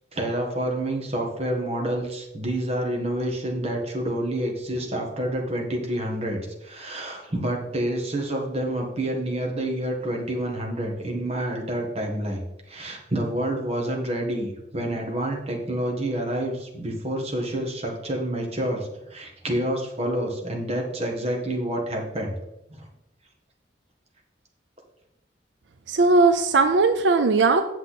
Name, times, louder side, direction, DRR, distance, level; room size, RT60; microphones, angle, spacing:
voice 1, 0.1-12.4 12.7-22.3, right 1 dB, 35° right, 1 dB, 1.7 m, -28 dB
voice 2, 25.9-27.6, right 3 dB, 80° right, 8 dB, 0.6 m, -18 dB
8.2 x 6.9 x 4.2 m, 0.89 s
head